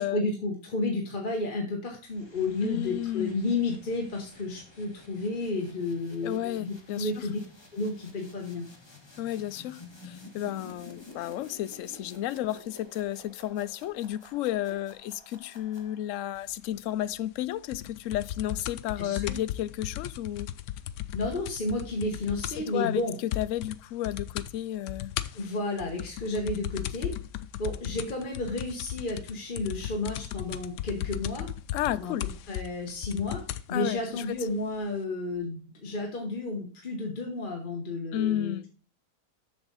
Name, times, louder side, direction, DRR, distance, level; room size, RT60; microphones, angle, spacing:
voice 1, 0.0-7.4 7.7-8.7 19.0-19.4 21.1-23.2 25.3-27.1 27.6-31.5 31.9-32.2 32.5-38.6, left 2 dB, 35° left, 1.3 m, -32 dB
sound 1, 2.0-16.3, left 2 dB, 15° left, 1.5 m, -52 dB
voice 2, 2.6-3.4 6.2-7.3 9.2-20.5 22.6-23.0 23.4-25.1 31.7-32.3 33.7-34.4 38.1-38.7, left 13 dB, 70° left, 0.8 m, -32 dB
sound 2, 17.7-22.7 23.0-23.1 23.3-23.8 24.0-24.5 24.9-33.7 34.5-34.6, left 12 dB, 90° left, 1.2 m, -36 dB
7.2 x 6.9 x 4.0 m
omnidirectional pair, 1.7 m